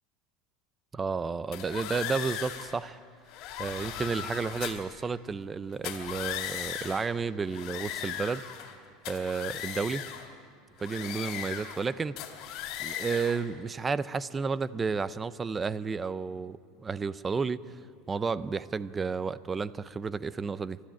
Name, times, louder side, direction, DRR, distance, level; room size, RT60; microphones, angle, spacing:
voice 1, 0.9-3.0 3.6-8.4 9.1-10.1 10.8-12.2 12.8-17.8 18.1-20.8, right 5 dB, 15° right, 0.5 m, -32 dB
sound 1, 1.5-2.7 3.3-4.9 5.7-7.1 7.5-8.7 9.0-10.3 10.8-11.9 12.2-13.4, left 10 dB, 50° left, 2.9 m, -37 dB
28.5 x 13.0 x 9.2 m
supercardioid pair, 150°, 0 cm